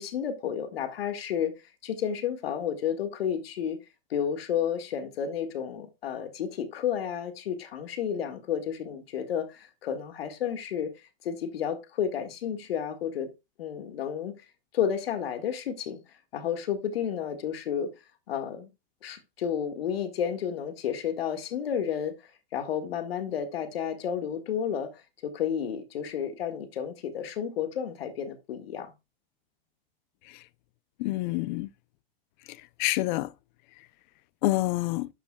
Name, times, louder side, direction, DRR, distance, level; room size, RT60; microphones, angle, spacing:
voice 1, 0.0-1.5 1.8-3.8 4.1-13.3 13.6-14.4 14.7-16.0 16.3-17.9 18.3-18.7 19.0-28.9, left 8 dB, 80° left, 1.8 m, -31 dB
voice 2, 31.0-31.7 32.5-33.3 34.4-35.1, left 18 dB, 50° left, 0.6 m, -28 dB
11.5 x 6.9 x 2.3 m
hypercardioid pair, 125°, 30 cm